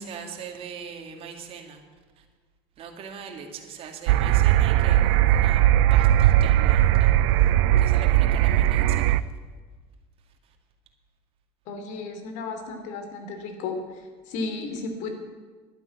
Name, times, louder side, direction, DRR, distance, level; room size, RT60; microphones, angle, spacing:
voice 1, 0.1-1.8 2.8-5.6 5.9-7.1 7.8-9.2, right 6 dB, 45° right, 4 dB, 2.2 m, -40 dB
sound 1, 4.1-9.2, right 13 dB, 70° right, 0.5 m, -19 dB
voice 2, 11.7-15.1, left 3 dB, 60° left, 5 dB, 2.9 m, -34 dB
11.5 x 9.7 x 8.2 m, 1.4 s
supercardioid pair, 115°, 14 cm